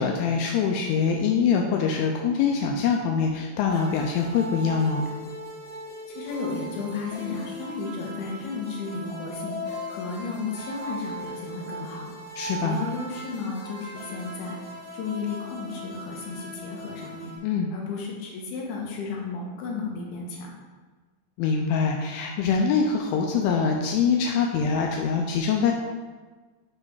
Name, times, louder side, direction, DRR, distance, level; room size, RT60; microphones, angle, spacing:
voice 1, 0.0-5.1 12.4-12.8 17.4-17.7 21.4-25.7, left 6 dB, 85° left, 1 dB, 2.4 m, -24 dB
sound 1, 3.7-17.4, equal, 40° left, 2.2 m, -39 dB
voice 2, 6.1-12.1 12.6-14.6 14.9-17.3 17.7-20.5, left 4 dB, 65° left, -2 dB, 2.4 m, -33 dB
9.4 x 3.3 x 4.6 m, 1.4 s
omnidirectional pair, 4.3 m